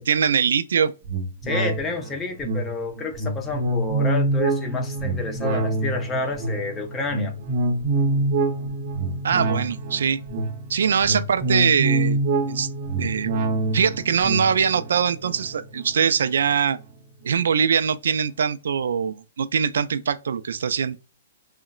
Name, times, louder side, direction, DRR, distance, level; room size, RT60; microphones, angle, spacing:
voice 1, 0.1-0.9 9.2-10.2 10.7-12.2 12.5-12.7 13.0-13.3 13.7-16.8 17.2-21.0, right 7 dB, 80° right, 0.3 m, -22 dB
sound 1, 1.1-16.8 17.2-17.3, right 2 dB, 40° right, 0.7 m, -26 dB
voice 2, 1.4-7.3, left 3 dB, 15° left, 0.5 m, -29 dB
3.8 x 2.1 x 2.3 m
hypercardioid pair, 160°, 0 cm